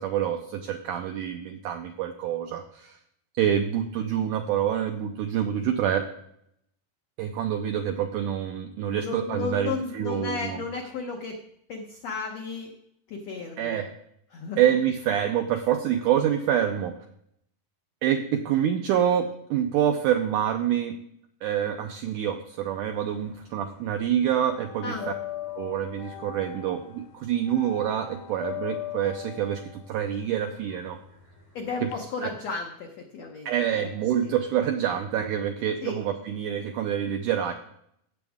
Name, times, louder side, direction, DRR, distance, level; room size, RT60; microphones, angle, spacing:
voice 1, 0.0-3.0 3.4-6.1 7.2-10.6 13.6-13.9 14.6-16.9 18.0-20.9 21.4-24.9 25.6-31.0 31.8-31.9 32.2-32.3 33.5-37.5, right 10 dB, 85° right, 5 dB, 1.8 m, -26 dB
voice 2, 8.9-11.4 11.7-12.7 13.1-13.8 14.3-14.6 24.8-25.1 31.5-33.9 34.2-34.3 35.8-36.0, left 4 dB, 85° left, 2 dB, 1.4 m, -34 dB
sound 1, 22.7-23.8 24.0-31.9, left 12 dB, 70° left, 1.8 m, -39 dB
16.0 x 7.1 x 3.5 m, 0.72 s
omnidirectional pair, 4.4 m